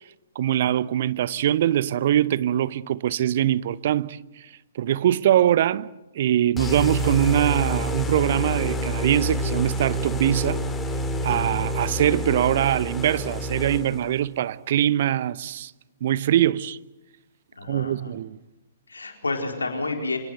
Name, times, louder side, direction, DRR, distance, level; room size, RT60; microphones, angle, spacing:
voice 1, 0.3-4.2 4.7-5.9 6.1-10.6 11.2-15.7 16.0-16.8 17.7-18.4, right 11 dB, 45° right, 0.8 m, -22 dB
sound 1, 6.6-14.2, equal, 10° left, 2.5 m, -28 dB
voice 2, 17.6-18.1 18.9-20.2, left 3 dB, 75° left, 4.3 m, -29 dB
26.5 x 18.0 x 8.0 m
figure-of-eight pair, 120°, 0 cm